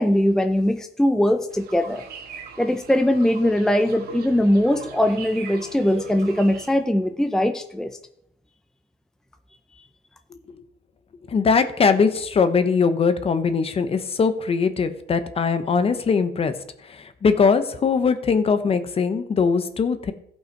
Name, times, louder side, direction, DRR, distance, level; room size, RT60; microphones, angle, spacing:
voice 1, 0.0-2.0 2.6-8.0, left 1 dB, 5° left, 7 dB, 0.6 m, -21 dB
sound 1, 1.5-6.7, right 6 dB, 65° right, 1.6 m, -40 dB
voice 2, 11.3-16.5 16.9-20.1, left 5 dB, 35° left, 11 dB, 1.0 m, -21 dB
15.5 x 5.7 x 4.6 m, 0.76 s
cardioid pair, 110°, 17 cm